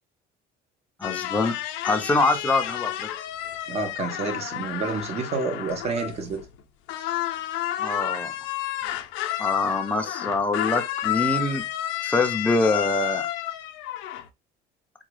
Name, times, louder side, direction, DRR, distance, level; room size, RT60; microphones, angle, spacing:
sound 1, 1.0-6.6 6.9-14.3, left 13 dB, 85° left, 0.5 m, -31 dB
voice 1, 1.0-1.5 1.8-3.1 7.8-8.3 9.4-11.6 12.0-13.3, left 3 dB, 5° left, 0.5 m, -24 dB
voice 2, 3.7-6.4, right 4 dB, 35° right, 0.8 m, -29 dB
3.6 x 2.2 x 3.2 m
cardioid pair, 155°, 19 cm